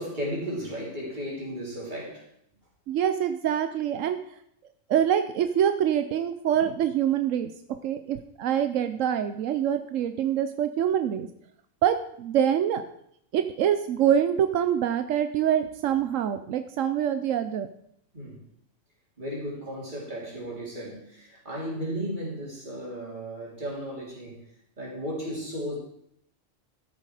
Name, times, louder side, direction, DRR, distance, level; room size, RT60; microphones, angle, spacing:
voice 1, 0.0-2.3 18.1-18.4 19.2-24.4 24.8-25.8, equal, 40° right, -4 dB, 4.2 m, -34 dB
voice 2, 2.9-4.2 4.9-7.5 7.8-11.3 11.8-12.8 13.3-17.7, right 9 dB, 90° right, 9 dB, 1.1 m, -25 dB
13.0 x 7.5 x 4.9 m, 0.71 s
omnidirectional pair, 1.3 m